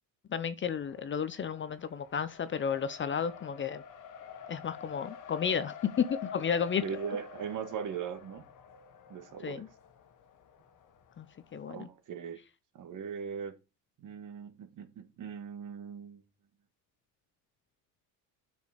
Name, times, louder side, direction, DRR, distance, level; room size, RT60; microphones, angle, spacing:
voice 1, 0.3-3.8 4.5-6.8 9.4-9.7 11.2-11.3 11.5-11.9, left 7 dB, 30° left, 0.6 m, -32 dB
Race car auto racing, 0.6-11.7, left 7 dB, 50° left, 1.4 m, -49 dB
voice 2, 6.8-8.4 9.1-9.7 11.7-12.4 12.7-13.5 14.0-16.2, right 7 dB, 50° right, 1.7 m, -39 dB
8.6 x 6.2 x 5.0 m
cardioid pair, 130°, 40 cm